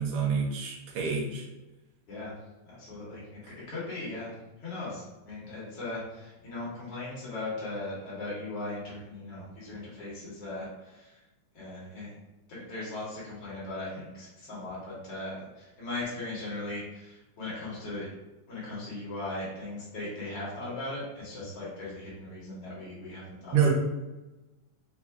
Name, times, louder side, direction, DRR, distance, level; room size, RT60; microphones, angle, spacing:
voice 1, 0.0-1.4 3.4-3.5 23.5-23.7, right 6 dB, 70° right, -2 dB, 1.4 m, -27 dB
voice 2, 2.7-3.4 3.7-4.3 4.6-11.2 11.5-12.1 12.5-18.1 18.5-23.7, left 2 dB, 50° left, -8 dB, 2.2 m, -38 dB
5.6 x 2.4 x 3.6 m, 1.1 s
omnidirectional pair, 3.6 m